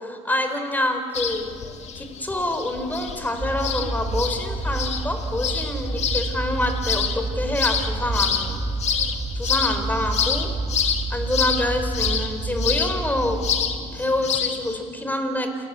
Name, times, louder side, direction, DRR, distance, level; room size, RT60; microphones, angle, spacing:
voice 1, 0.0-1.4 1.9-8.6 9.4-10.5 11.1-13.4 13.9-15.7, left 1 dB, 10° left, 6 dB, 4.3 m, -26 dB
sound 1, 1.1-14.8, left 7 dB, 50° left, 2.1 m, -28 dB
sound 2, 3.4-13.7, right 3 dB, 20° right, 2.2 m, -29 dB
28.5 x 17.5 x 8.3 m, 2.2 s
supercardioid pair, 90°, 14 cm